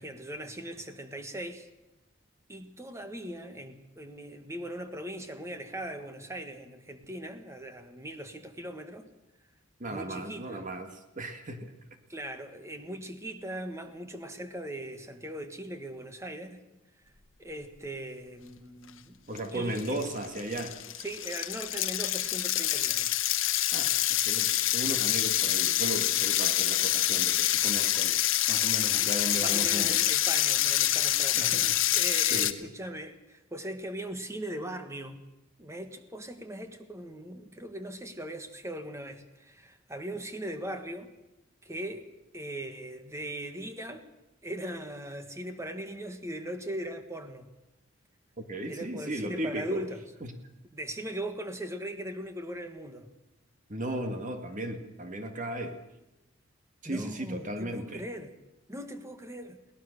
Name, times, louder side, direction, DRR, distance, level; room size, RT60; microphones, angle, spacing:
voice 1, 0.0-1.7 2.5-9.1 9.9-10.7 12.1-16.6 17.4-19.2 19.5-20.0 21.0-23.2 29.0-31.7 31.9-35.2 35.6-41.1 41.6-42.1 42.3-44.1 44.4-47.5 48.7-50.0 50.7-53.1 56.9-58.3 58.7-59.6, right 1 dB, 15° right, 7 dB, 1.6 m, -39 dB
voice 2, 9.8-11.7 19.3-20.8 23.7-23.9 24.2-28.2 28.5-30.0 31.4-31.8 32.3-32.7 48.5-49.8 50.2-50.3 53.7-55.8 56.8-58.0, right 1 dB, 40° right, 6 dB, 2.0 m, -36 dB
sound 1, 19.4-19.5 19.8-32.5, left 13 dB, 70° left, 1.0 m, -26 dB
22.5 x 18.0 x 6.7 m, 0.98 s
head